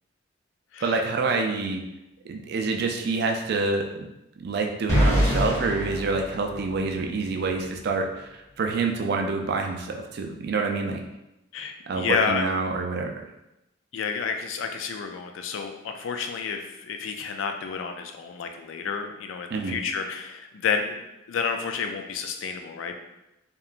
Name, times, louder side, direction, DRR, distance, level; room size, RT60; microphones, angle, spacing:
voice 1, 0.8-1.8 2.3-4.1 4.4-11.0 11.9-13.2 19.5-19.8, right 3 dB, 55° right, 3 dB, 0.3 m, -27 dB
sound 1, 4.9-7.0, equal, 15° left, 0.5 m, -24 dB
voice 2, 11.5-12.4 13.9-21.0 21.3-23.0, left 5 dB, 80° left, 5 dB, 0.3 m, -30 dB
2.9 x 2.2 x 2.4 m, 0.92 s
head